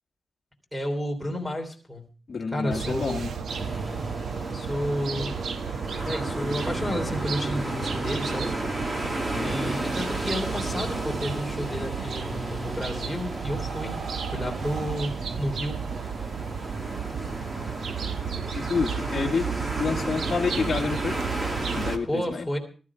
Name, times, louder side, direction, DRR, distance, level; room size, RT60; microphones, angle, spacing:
voice 1, 0.7-2.1 2.5-3.2 4.5-5.4 6.0-8.5 9.4-14.0 14.3-15.8 22.0-22.6, equal, 5° right, 5 dB, 3.1 m, -31 dB
voice 2, 2.3-3.3 9.3-9.6 18.5-19.5 19.8-21.1 21.7-22.5, left 5 dB, 40° left, 0 dB, 1.5 m, -28 dB
sound 1, 2.7-22.0, right 6 dB, 75° right, 1.1 m, -33 dB
sound 2, 3.5-22.0, right 1 dB, 25° right, 2.0 m, -33 dB
17.5 x 13.0 x 4.8 m, 0.39 s
wide cardioid pair, 175°, 0 cm